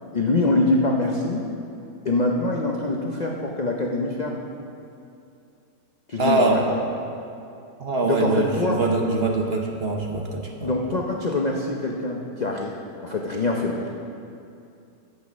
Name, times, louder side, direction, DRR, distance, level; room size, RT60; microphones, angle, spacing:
voice 1, 0.1-1.5 2.0-4.4 6.1-6.4 6.7-6.8 8.0-8.8 10.6-13.9, left 2 dB, 80° left, 0 dB, 0.3 m, -24 dB
voice 2, 6.2-6.7 7.8-10.7, right 3 dB, 50° right, 1 dB, 0.8 m, -23 dB
9.2 x 8.5 x 6.2 m, 2.6 s
omnidirectional pair, 1.9 m